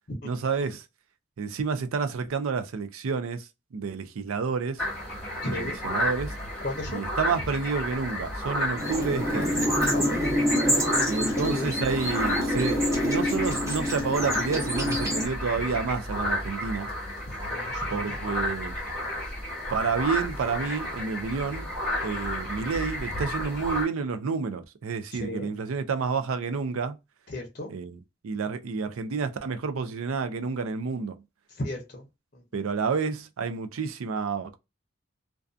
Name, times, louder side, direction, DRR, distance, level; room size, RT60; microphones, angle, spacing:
voice 1, 0.2-0.8 1.4-4.8 5.5-6.3 6.9-9.6 11.1-16.9 17.9-18.7 19.7-21.7 22.0-27.0 27.7-28.0 28.2-31.2 32.5-34.6, right 5 dB, 85° right, 0.4 m, -29 dB
sound 1, 4.8-23.8, left 1 dB, 5° left, 1.0 m, -32 dB
voice 2, 5.4-5.8 6.6-7.0 9.9-11.7 17.4-18.2 25.1-25.5 27.3-27.7 31.5-32.1 32.3-32.4, left 1 dB, 40° left, 0.6 m, -35 dB
sound 2, 8.8-15.3, equal, 15° right, 0.7 m, -27 dB
2.5 x 2.3 x 2.3 m
head